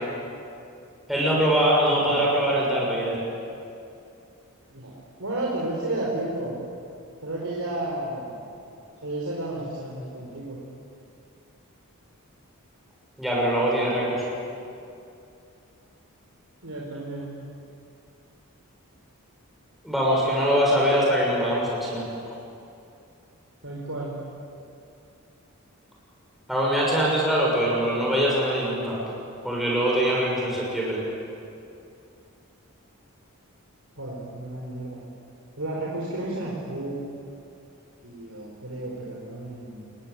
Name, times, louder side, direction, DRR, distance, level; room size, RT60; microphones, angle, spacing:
voice 1, 1.1-3.2 13.2-14.2 19.8-22.0 26.5-29.0 29.4-31.0, equal, ahead, -4 dB, 6.3 m, -23 dB
voice 2, 1.9-2.4 4.7-6.6 7.2-8.4 9.0-10.6 16.6-17.4 23.6-24.2 34.0-35.0 35.6-37.0 38.0-39.8, right 2 dB, 70° right, -3 dB, 4.8 m, -32 dB
28.0 x 22.5 x 9.3 m, 2.6 s
head